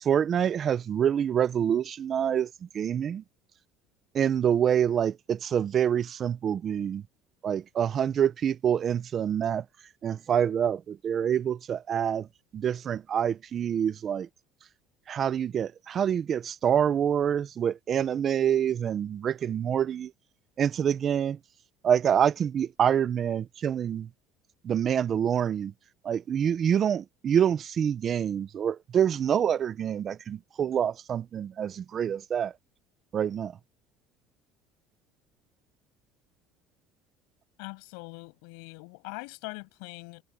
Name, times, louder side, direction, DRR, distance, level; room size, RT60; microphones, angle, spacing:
voice 1, 0.0-3.2 4.1-7.0 7.4-9.6 10.0-12.3 12.5-14.3 15.1-20.1 20.6-21.4 21.8-24.1 24.6-25.7 26.0-32.5 33.1-33.5, right 9 dB, 30° right, 0.5 m, -26 dB
voice 2, 37.6-40.2, left 33 dB, 85° left, 6.5 m, -42 dB
cardioid pair, 160°, 0 cm